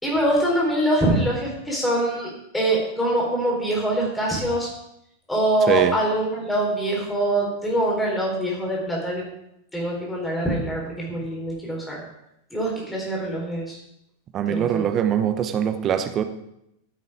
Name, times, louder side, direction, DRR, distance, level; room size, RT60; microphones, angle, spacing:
voice 1, 0.0-4.7 5.3-9.2 9.7-12.0 12.5-13.8 14.5-14.9, right 1 dB, 10° left, -3 dB, 4.1 m, -24 dB
voice 2, 14.3-16.2, right 9 dB, 30° right, 9 dB, 0.9 m, -22 dB
15.0 x 7.4 x 4.9 m, 0.82 s
figure-of-eight pair, 90°, 0 cm